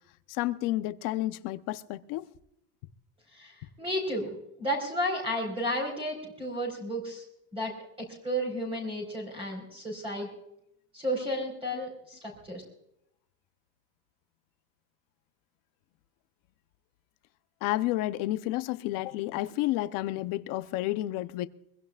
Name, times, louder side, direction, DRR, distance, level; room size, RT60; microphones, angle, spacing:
voice 1, 0.3-2.3 17.6-21.5, left 16 dB, 45° left, 11 dB, 0.9 m, -30 dB
voice 2, 3.3-4.3 4.6-7.2 7.5-10.3 10.9-12.6, equal, 10° right, 0 dB, 4.5 m, -33 dB
24.5 x 16.5 x 2.5 m, 0.79 s
supercardioid pair, 155°, 46 cm